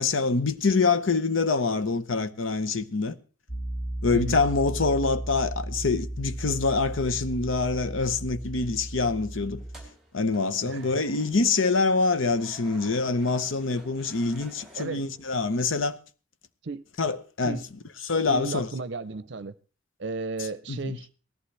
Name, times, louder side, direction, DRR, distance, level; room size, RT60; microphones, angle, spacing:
voice 1, 0.0-3.2 4.0-9.6 10.1-16.0 17.0-18.7 20.7-21.0, left 4 dB, 80° left, 0.8 m, -25 dB
Piano, 3.5-9.8, right 1 dB, 40° left, 2.4 m, -35 dB
sound 1, 9.6-15.6, right 1 dB, ahead, 3.6 m, -52 dB
voice 2, 18.3-19.5 20.0-21.1, right 3 dB, 60° right, 0.6 m, -34 dB
18.5 x 14.0 x 3.3 m
head